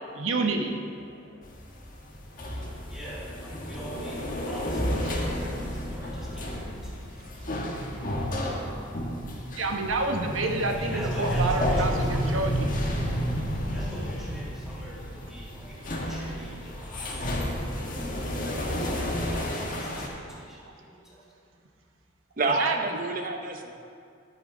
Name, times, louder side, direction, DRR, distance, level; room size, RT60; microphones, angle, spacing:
voice 1, 0.1-0.9 1.3-1.4 9.6-12.7 22.6-22.8, right 3 dB, 90° right, 3 dB, 1.0 m, -28 dB
sound 1, 1.4-20.1, equal, 45° left, 1.4 m, -31 dB
voice 2, 2.9-7.3 10.7-12.5 13.7-17.7 18.0-21.6, right 1 dB, 5° right, -8 dB, 2.4 m, -44 dB
Bowed string instrument, 4.8-11.2, equal, 20° left, 1.9 m, -41 dB
voice 3, 22.4-23.7, right 3 dB, 45° right, 4 dB, 0.9 m, -28 dB
10.5 x 9.1 x 3.8 m, 2.3 s
head